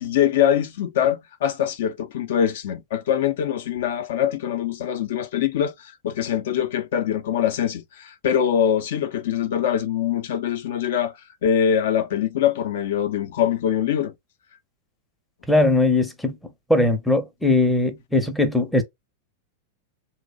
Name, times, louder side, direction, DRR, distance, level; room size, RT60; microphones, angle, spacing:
voice 1, 0.0-14.1, left 9 dB, 70° left, 0.5 m, -23 dB
voice 2, 15.5-16.4 16.7-18.8, left 2 dB, 5° left, 0.5 m, -20 dB
2.7 x 2.1 x 2.2 m
hypercardioid pair, 125°, 0 cm